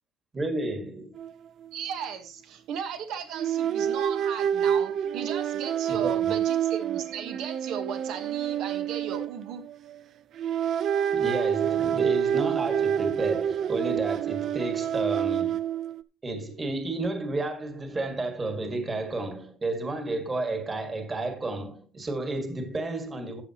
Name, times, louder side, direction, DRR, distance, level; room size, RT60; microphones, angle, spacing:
voice 1, 0.3-1.2 6.0-6.4 11.1-15.6 16.2-23.4, right 2 dB, 15° right, 1.7 m, -32 dB
sound 1, 1.2-1.3 1.6-1.8 3.4-10.0 10.4-16.0, right 9 dB, 40° right, 0.5 m, -27 dB
voice 2, 1.7-9.6, right 7 dB, 65° right, 1.2 m, -36 dB
13.5 x 8.8 x 2.9 m
cardioid pair, 175°, 0 cm